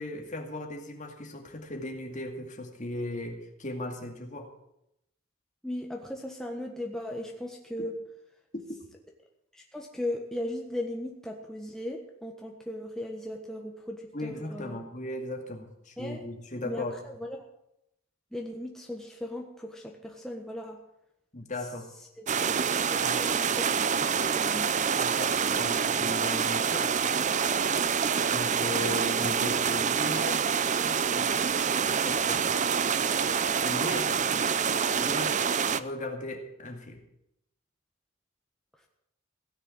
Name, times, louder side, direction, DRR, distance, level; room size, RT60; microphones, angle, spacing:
voice 1, 0.0-4.5 8.5-8.8 14.1-16.9 21.3-21.9 22.9-23.2 24.9-26.9 28.3-30.4 30.8-31.4 31.7-32.6 33.6-34.1 34.9-35.4 35.8-37.0, left 1 dB, 35° left, 3 dB, 2.3 m, -37 dB
voice 2, 5.6-7.9 9.5-14.8 16.0-16.2 16.6-17.5 18.3-20.8 22.2-22.3 22.9-23.7 24.0-24.9, left 1 dB, ahead, 0 dB, 1.4 m, -37 dB
sound 1, 22.3-35.8, right 6 dB, 35° right, 0.5 m, -26 dB
17.0 x 6.8 x 9.6 m, 0.81 s
head